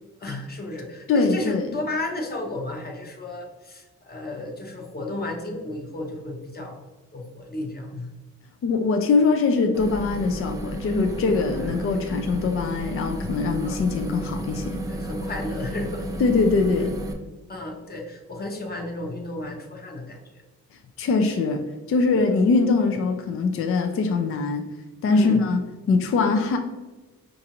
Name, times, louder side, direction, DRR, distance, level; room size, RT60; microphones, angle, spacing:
voice 1, 0.2-6.8 7.1-8.1 11.1-11.2 13.6-13.8 14.9-16.2 17.5-20.4 22.1-22.2 25.1-25.4, left 2 dB, 30° left, 1 dB, 0.9 m, -33 dB
voice 2, 1.1-1.7 8.6-14.8 16.2-16.9 21.0-24.7 25.0-25.6 25.9-26.6, left 4 dB, 45° left, 5 dB, 0.4 m, -22 dB
sound 1, 9.7-17.1, right 1 dB, 10° right, 0.4 m, -32 dB
4.8 x 2.6 x 2.9 m, 1.2 s
cardioid pair, 105°, 30 cm